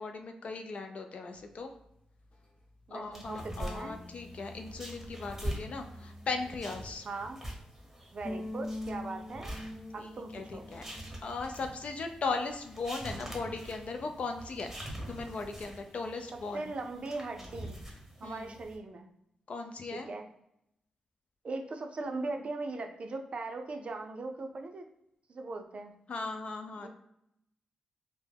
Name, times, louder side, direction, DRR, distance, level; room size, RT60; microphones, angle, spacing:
voice 1, 0.0-1.7 2.9-7.1 10.0-10.9 11.2-14.8 15.1-16.6 18.2-18.6 19.5-20.1 26.1-26.9, left 4 dB, 60° left, 5 dB, 0.4 m, -38 dB
sound 1, 1.3-13.9, left 1 dB, 45° left, 1.0 m, -47 dB
voice 2, 2.9-4.0 7.0-7.4 8.1-9.5 9.9-10.7 16.5-17.8 18.2-19.1 19.9-20.3 21.4-24.9 25.3-25.9 26.8-26.9, right 3 dB, 55° right, 4 dB, 0.4 m, -39 dB
sound 2, 3.1-18.8, equal, 10° right, 0.9 m, -44 dB
2.1 x 2.0 x 3.3 m, 0.78 s
cardioid pair, 55°, 2 cm